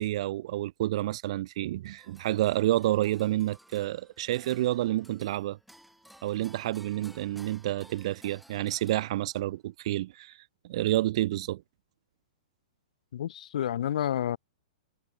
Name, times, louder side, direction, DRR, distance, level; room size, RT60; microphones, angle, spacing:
voice 1, 0.0-5.6 6.2-10.4 10.6-11.6, right 15 dB, 45° right, 0.4 m, -29 dB
sound 1, 1.8-9.5, right 1 dB, ahead, 3.9 m, -56 dB
voice 2, 13.1-14.4, left 10 dB, 65° left, 3.2 m, -29 dB
hypercardioid pair, 165°, 4 cm